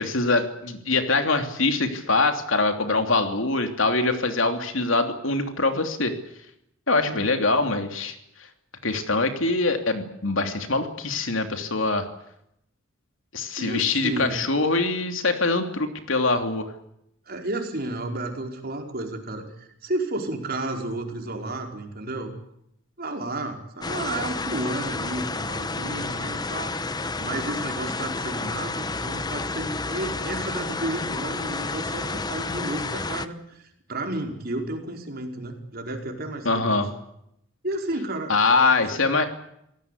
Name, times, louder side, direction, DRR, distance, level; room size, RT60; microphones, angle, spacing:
voice 1, 0.0-6.1 6.9-8.2 8.8-12.1 13.3-16.7 36.4-36.9 38.3-39.3, left 3 dB, 75° left, 6 dB, 3.1 m, -23 dB
voice 2, 6.9-7.2 13.6-14.4 17.3-22.3 23.0-26.7 27.2-36.9 37.6-38.3 38.9-39.0, right 2 dB, 50° right, 3 dB, 4.8 m, -32 dB
sound 1, 23.8-33.3, left 3 dB, 20° left, 1.0 m, -30 dB
27.5 x 18.0 x 8.3 m, 0.78 s
head